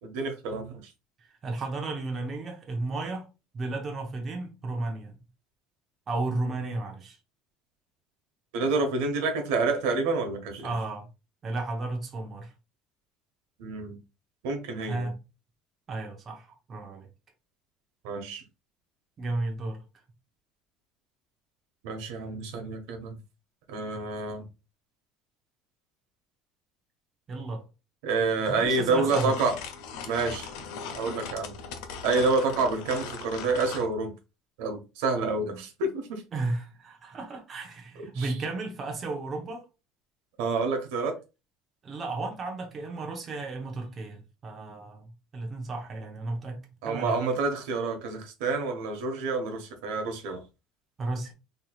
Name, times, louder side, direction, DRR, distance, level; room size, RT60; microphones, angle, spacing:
voice 1, 0.0-0.8 8.5-10.8 13.6-14.0 14.4-15.1 18.0-18.4 21.8-23.2 23.7-24.5 28.0-29.5 30.0-30.5 30.9-31.5 32.0-34.1 34.6-36.2 38.0-38.3 40.4-41.2 46.8-50.4, right 3 dB, 85° right, 1.1 m, -28 dB
voice 2, 1.4-3.3 3.5-5.2 6.1-7.2 10.6-11.1 11.4-12.5 14.8-15.1 15.9-17.1 19.2-19.8 27.3-27.7 28.5-29.4 36.3-39.6 41.8-45.1 45.3-46.6 46.9-47.2 51.0-51.3, right 2 dB, 25° right, 0.8 m, -33 dB
sound 1, 28.6-33.9, left 6 dB, 80° left, 0.8 m, -39 dB
4.5 x 3.1 x 2.4 m
cardioid pair, 170°, 0 cm